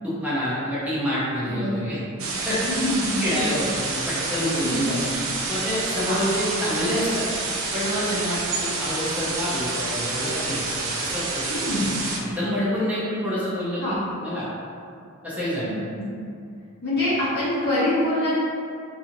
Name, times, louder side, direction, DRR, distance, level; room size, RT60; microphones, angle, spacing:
voice 1, 0.0-2.6 3.2-7.3 7.7-11.4 11.7-11.9 12.2-14.4 15.2-15.8, equal, 5° right, -11 dB, 0.6 m, -27 dB
voice 2, 1.4-1.7 2.7-3.2 4.6-4.8 6.1-6.2 11.5-11.9 13.8-14.0 15.6-16.0 16.8-18.4, left 1 dB, 50° left, -10 dB, 0.9 m, -25 dB
sound 1, 2.2-12.2, right 3 dB, 65° right, 0.5 m, -28 dB
2.7 x 2.5 x 2.9 m, 2.4 s
head